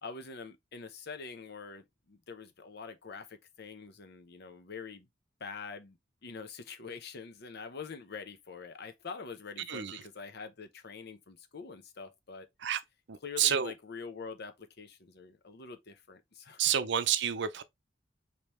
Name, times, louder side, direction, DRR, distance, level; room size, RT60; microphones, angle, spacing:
voice 1, 0.0-5.1 5.4-12.5 13.2-16.6, left 5 dB, 60° left, 0.8 m, -45 dB
voice 2, 9.7-10.0 12.6-12.8 13.1-13.7 16.6-17.6, right 9 dB, 65° right, 0.6 m, -29 dB
5.2 x 2.9 x 3.1 m
head